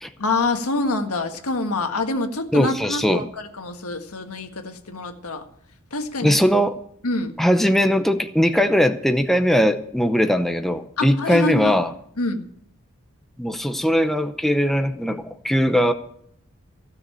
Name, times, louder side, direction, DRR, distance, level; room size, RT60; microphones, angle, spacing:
voice 1, 0.2-5.4 5.9-6.4 7.0-7.3 11.0-11.8 12.2-12.5, left 2 dB, 85° left, 5 dB, 1.7 m, -26 dB
voice 2, 2.5-3.2 6.2-6.7 7.4-11.9 13.4-15.9, equal, ahead, 7 dB, 0.7 m, -20 dB
15.5 x 6.8 x 9.3 m, 0.68 s
head